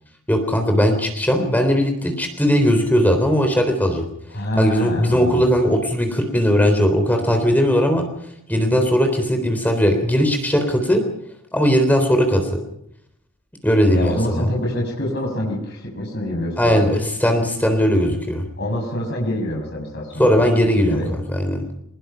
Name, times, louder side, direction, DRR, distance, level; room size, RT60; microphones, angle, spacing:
voice 1, 0.3-4.1 4.6-8.1 8.5-11.0 11.5-12.6 13.6-14.5 16.6-18.5 20.2-21.6, equal, 10° left, 5 dB, 3.6 m, -18 dB
voice 2, 4.3-5.4 13.9-16.9 18.6-20.3 20.9-21.1, left 1 dB, 50° left, -1 dB, 6.4 m, -26 dB
23.0 x 21.5 x 5.8 m, 0.74 s
head